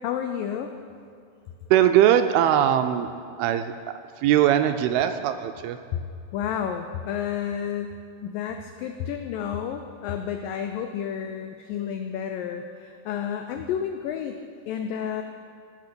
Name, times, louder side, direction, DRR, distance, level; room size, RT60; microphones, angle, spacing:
voice 1, 0.0-0.7 6.3-7.9 8.2-14.4 14.7-15.2, left 8 dB, 85° left, 6 dB, 1.9 m, -31 dB
voice 2, 1.7-3.1 3.4-3.7 4.2-5.8, right 11 dB, 80° right, 8 dB, 2.3 m, -20 dB
18.5 x 6.4 x 6.8 m, 2.4 s
omnidirectional pair, 4.7 m